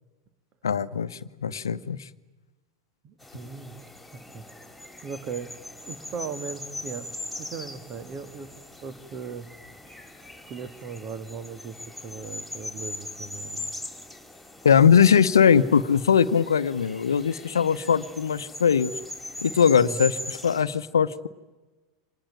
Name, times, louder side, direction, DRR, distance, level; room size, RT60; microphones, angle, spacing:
voice 1, 0.6-2.0 14.6-18.9 19.4-20.1 20.4-21.3, left 7 dB, 80° left, 15 dB, 0.9 m, -20 dB
voice 2, 3.0-3.8 4.1-4.5 5.0-5.6 5.8-7.1 7.4-8.5 8.8-9.5 10.5-13.7 19.8-20.0, right 6 dB, 40° right, 12 dB, 1.9 m, -38 dB
sound 1, 3.2-20.6, left 1 dB, ahead, 4.1 m, -40 dB
26.0 x 20.5 x 9.0 m, 1.2 s
figure-of-eight pair, 85°, 2 cm